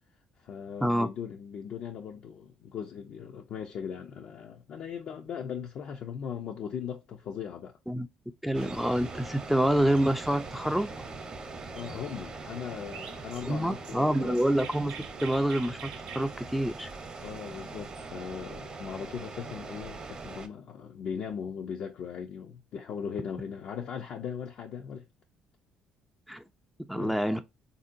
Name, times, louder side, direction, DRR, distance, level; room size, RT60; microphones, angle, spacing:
voice 1, 0.4-7.8 11.8-14.4 17.2-25.0 26.9-27.2, left 7 dB, 65° left, 0.5 m, -39 dB
voice 2, 8.4-10.9 13.4-14.9 15.2-16.9 26.3-26.4 26.9-27.4, right 1 dB, ahead, 0.3 m, -27 dB
sound 1, 8.5-20.5, right 3 dB, 35° right, 0.7 m, -42 dB
Chirp tweet, 12.9-18.1, right 8 dB, 85° right, 0.5 m, -47 dB
3.5 x 2.7 x 2.5 m
supercardioid pair, 75°, 2 cm